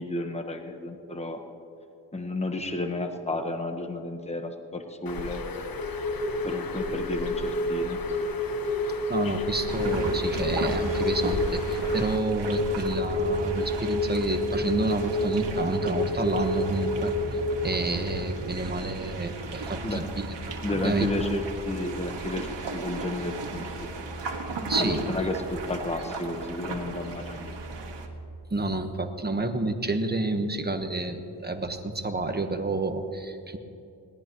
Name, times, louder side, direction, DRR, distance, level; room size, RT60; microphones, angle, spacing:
voice 1, 0.0-1.4 2.1-5.4 6.4-8.0 19.8-20.0 20.6-24.0 24.8-27.5, left 2 dB, 15° left, 5 dB, 1.2 m, -32 dB
Bird, 5.1-12.2, left 4 dB, 55° left, 1.0 m, -36 dB
sound 1, 5.8-17.8, left 2 dB, 70° left, 2.4 m, -29 dB
voice 2, 9.1-20.3 20.7-21.1 24.7-25.0 28.5-33.6, right 2 dB, 25° right, 6 dB, 1.2 m, -29 dB
sound 2, 9.7-28.1, right 3 dB, 85° right, 1.7 m, -35 dB
21.5 x 18.0 x 3.1 m, 2.8 s
wide cardioid pair, 95°, 42 cm